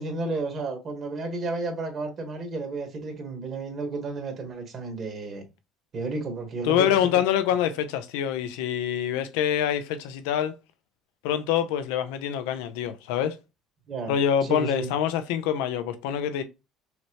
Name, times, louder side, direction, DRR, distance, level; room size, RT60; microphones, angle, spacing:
voice 1, 0.0-5.4 5.9-6.9 13.9-14.1 14.5-14.9, right 3 dB, 45° right, 1.5 m, -32 dB
voice 2, 6.6-10.6 11.2-13.4 14.1-16.4, left 9 dB, 90° left, 0.6 m, -25 dB
5.7 x 2.1 x 2.9 m
supercardioid pair, 100°, 0 cm